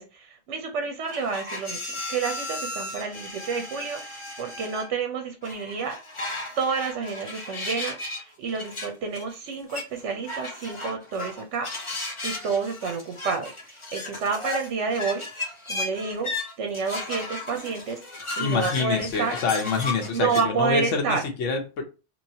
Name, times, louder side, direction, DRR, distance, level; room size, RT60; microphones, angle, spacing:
voice 1, 0.0-6.2 6.6-12.0 12.2-15.2 15.7-16.3 16.6-18.0 18.4-19.4 20.1-21.2, right 5 dB, 80° right, 5 dB, 1.0 m, -29 dB
sound 1, 1.1-4.9 5.4-8.2 8.5-20.4, left 2 dB, 30° left, 0.8 m, -35 dB
voice 2, 18.4-21.8, left 4 dB, 85° left, 3 dB, 1.1 m, -26 dB
3.0 x 2.9 x 2.7 m, 0.31 s
omnidirectional pair, 1.2 m